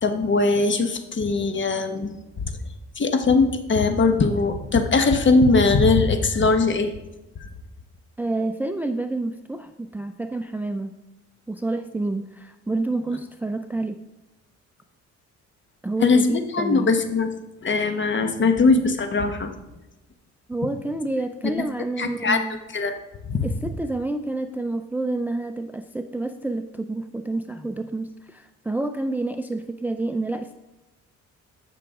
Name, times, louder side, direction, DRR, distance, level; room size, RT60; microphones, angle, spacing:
voice 1, 0.0-2.1 3.0-6.9 7.4-7.5 16.0-17.3 17.6-19.5 21.4-21.6 22.0-22.4 22.7-22.9 23.3-23.5, left 3 dB, 40° left, 7 dB, 1.1 m, -20 dB
voice 2, 8.2-10.9 11.5-14.0 15.8-16.9 20.5-22.6 23.4-30.5, right 2 dB, 5° right, 7 dB, 0.4 m, -28 dB
13.5 x 5.9 x 3.7 m, 1.0 s
cardioid pair, 90°, 30 cm